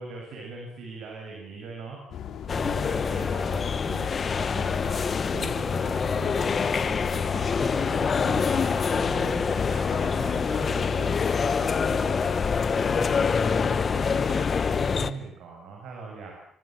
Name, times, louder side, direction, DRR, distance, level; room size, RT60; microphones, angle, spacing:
voice 1, 0.0-2.0 2.5-12.4 12.7-16.5, right 4 dB, 60° right, 0 dB, 7.2 m, -40 dB
sound 1, 2.1-9.7, left 8 dB, 50° left, 4.5 m, -40 dB
sound 2, 2.5-15.1, left 5 dB, 25° left, 1.1 m, -25 dB
28.5 x 25.0 x 7.7 m, 0.68 s
cardioid pair, 180°, 0 cm